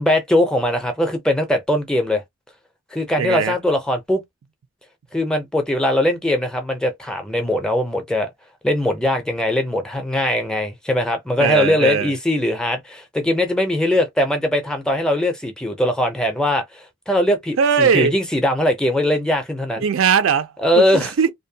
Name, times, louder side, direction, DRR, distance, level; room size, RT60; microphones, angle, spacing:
voice 1, 0.0-2.2 2.9-4.2 5.1-8.3 8.6-19.8 20.6-21.1, left 1 dB, 5° left, 0.4 m, -20 dB
voice 2, 3.2-3.6 11.4-12.1 17.6-18.1 19.8-21.3, right 6 dB, 70° right, 0.4 m, -19 dB
2.6 x 2.1 x 2.7 m
head